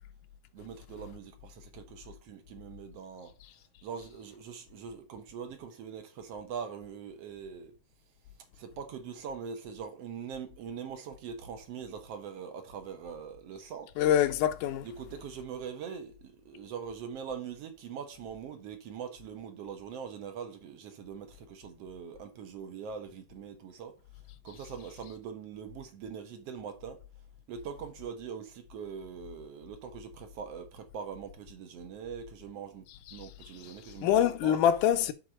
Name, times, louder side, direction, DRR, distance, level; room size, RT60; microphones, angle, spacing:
voice 1, 0.5-3.3 3.8-7.7 8.6-13.9 14.8-24.0 24.4-27.0 27.5-32.9 33.1-34.1 34.4-34.6, right 7 dB, 65° right, 1.8 m, -42 dB
voice 2, 14.0-14.9 34.0-35.1, left 10 dB, 85° left, 2.3 m, -25 dB
6.4 x 4.3 x 6.1 m
omnidirectional pair, 3.6 m